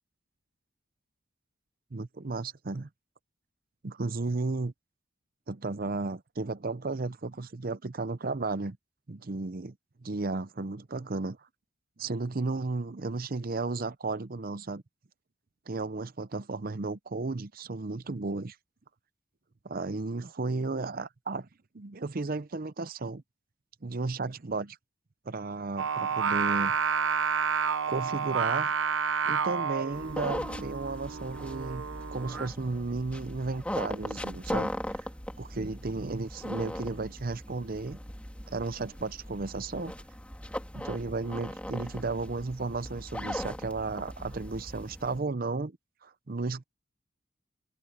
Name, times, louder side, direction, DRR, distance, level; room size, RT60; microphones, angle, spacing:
voice 1, 1.9-2.9 3.8-4.7 5.5-8.8 9.1-9.7 10.0-11.4 12.0-14.8 15.7-18.6 19.6-21.5 21.7-23.2 23.8-24.8 25.3-26.8 27.9-28.7 29.3-31.9 32.1-34.7 35.4-38.0 38.5-39.9 40.7-45.8 46.0-46.6, right 3 dB, 50° right, 0.7 m, -34 dB
Singing, 25.8-32.5, right 6 dB, 85° right, 0.8 m, -30 dB
sound 1, 29.9-45.2, equal, 5° left, 3.4 m, -39 dB
head